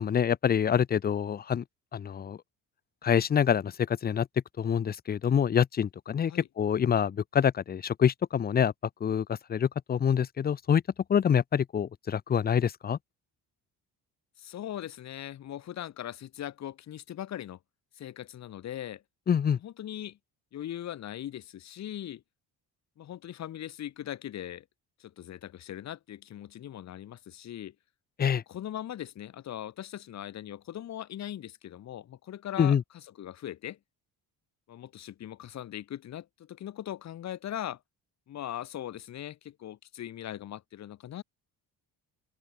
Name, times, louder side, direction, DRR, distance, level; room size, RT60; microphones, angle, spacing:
voice 1, 0.0-1.6 1.9-2.4 3.0-4.3 4.6-8.7 9.0-10.8 11.1-13.0 19.3-19.6 28.2-28.4 32.6-32.8, left 8 dB, 25° left, 0.7 m, -26 dB
voice 2, 14.4-17.6 17.9-19.0 19.5-20.2 20.5-22.2 23.0-24.6 25.0-27.7 28.5-32.8 33.2-33.8 34.7-37.8 38.3-41.2, left 11 dB, 45° left, 1.7 m, -40 dB
open air
cardioid pair, 180°, 39 cm